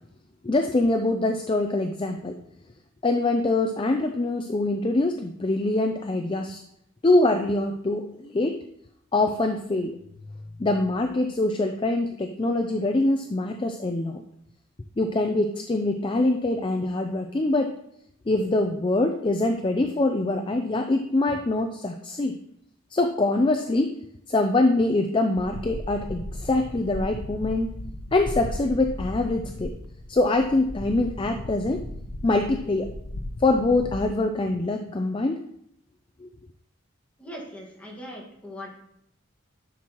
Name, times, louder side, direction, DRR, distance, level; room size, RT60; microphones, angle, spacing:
voice 1, 0.4-2.4 3.0-6.6 7.0-8.6 9.1-10.0 10.6-14.2 15.0-17.7 18.3-22.4 22.9-24.0 24.3-27.8 28.1-29.7 30.1-31.8 32.2-32.9 33.4-35.4 36.2-36.3, left 2 dB, 25° left, 5 dB, 0.4 m, -24 dB
sound 1, 25.4-34.0, left 1 dB, 90° left, 0.8 m, -36 dB
voice 2, 37.2-38.7, equal, 5° left, -3 dB, 1.7 m, -40 dB
11.0 x 6.1 x 3.0 m, 0.74 s
head